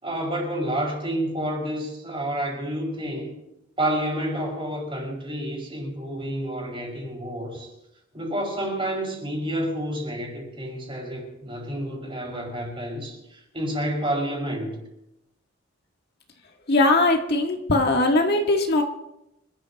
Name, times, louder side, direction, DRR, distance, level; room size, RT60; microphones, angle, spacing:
voice 1, 0.0-3.3 3.8-7.7 8.1-14.8, right 1 dB, 25° right, -1 dB, 5.4 m, -29 dB
voice 2, 16.7-18.8, left 2 dB, 55° left, 1 dB, 1.6 m, -20 dB
26.5 x 13.0 x 2.9 m, 0.86 s
head